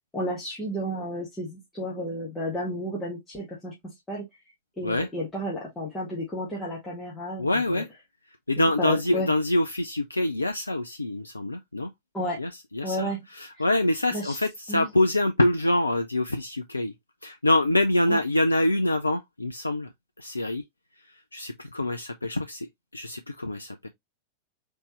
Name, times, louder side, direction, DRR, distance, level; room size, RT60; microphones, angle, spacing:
voice 1, 0.1-4.2 4.8-7.8 8.6-9.3 12.1-12.4 12.8-13.2 14.1-14.4 14.7-14.9 18.1-18.2, equal, 15° left, 1.9 m, -32 dB
voice 2, 7.4-7.9 8.5-11.9 12.4-16.9 17.2-19.9 20.2-20.6 21.3-23.9, left 1 dB, 80° left, 0.4 m, -25 dB
4.1 x 3.5 x 3.0 m
figure-of-eight pair, 90°, 0 cm